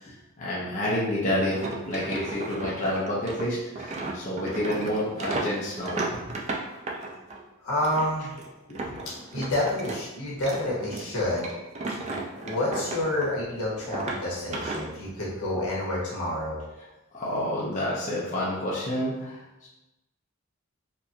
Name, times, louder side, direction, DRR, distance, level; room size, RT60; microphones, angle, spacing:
voice 1, 0.4-1.6 1.9-6.4 8.7-8.9 17.1-19.4 19.6-19.7, left 1 dB, 35° left, -7 dB, 0.7 m, -29 dB
sound 1, 1.4-7.4 7.8-10.0 10.3-13.5 13.8-14.8, right 2 dB, 30° right, 0.4 m, -34 dB
voice 2, 7.6-8.4 9.3-11.5 12.4-16.6, left 1 dB, 80° left, -6 dB, 1.4 m, -28 dB
4.4 x 2.6 x 2.8 m, 0.99 s
head